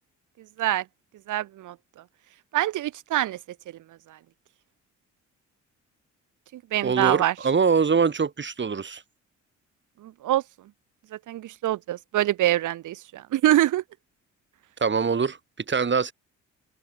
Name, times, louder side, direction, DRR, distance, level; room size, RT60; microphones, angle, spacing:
voice 1, 1.3-1.7 2.5-3.4 4.1-4.2 6.5-7.3 10.0-10.4 11.1-13.8, right 14 dB, 80° right, 3.4 m, -25 dB
voice 2, 6.8-9.0 14.8-15.4 15.7-16.1, right 5 dB, 40° right, 7.5 m, -23 dB
cardioid pair, 90°, 30 cm